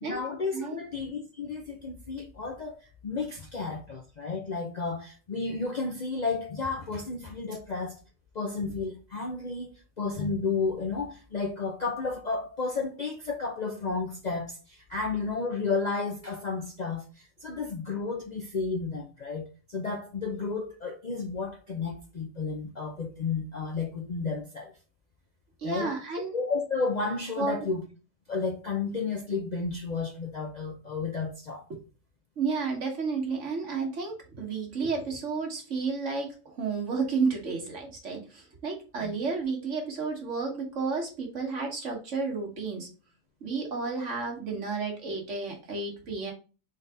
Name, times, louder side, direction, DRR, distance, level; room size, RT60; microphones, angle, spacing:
voice 1, 0.1-8.0 8.3-24.7 25.6-25.9 26.3-27.8 28.3-31.6 39.0-39.1, left 4 dB, 50° left, 0.5 m, -32 dB
voice 2, 25.6-26.3 27.4-27.6 31.7-31.8 32.4-42.9 43.4-46.3, right 4 dB, 65° right, 1.6 m, -32 dB
4.0 x 3.9 x 3.3 m
omnidirectional pair, 1.4 m